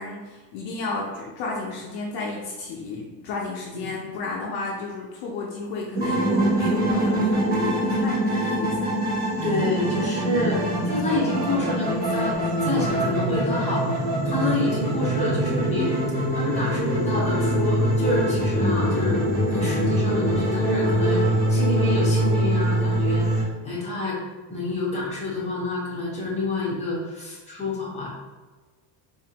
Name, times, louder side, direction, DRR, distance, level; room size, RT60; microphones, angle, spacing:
voice 1, 0.0-9.1 10.6-11.1, left 3 dB, 55° left, -2 dB, 0.7 m, -33 dB
sound 1, 5.9-23.4, right 1 dB, 20° right, 1.2 m, -23 dB
voice 2, 9.4-12.4 12.6-15.9 16.3-24.2 24.5-28.1, left 2 dB, 15° left, -6 dB, 1.0 m, -28 dB
4.2 x 2.5 x 2.8 m, 1.3 s
cardioid pair, 160°, 44 cm